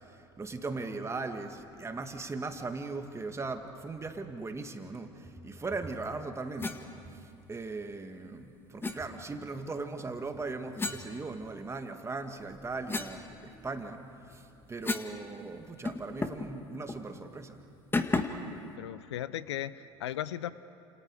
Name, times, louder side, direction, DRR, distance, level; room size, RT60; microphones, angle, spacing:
voice 1, 0.4-7.2 7.5-14.0 14.3-17.6, right 3 dB, 20° right, 6 dB, 2.2 m, -38 dB
sound 1, 6.6-6.8 8.8-9.0 10.8-11.8 12.3-15.2 15.4-15.5 15.8-16.5 16.9-17.0 17.9-18.5, left 3 dB, 15° left, 1.8 m, -35 dB
voice 2, 18.8-20.5, left 12 dB, 80° left, 17 dB, 0.6 m, -36 dB
30.0 x 28.0 x 5.0 m, 2.6 s
hypercardioid pair, 75°, 14 cm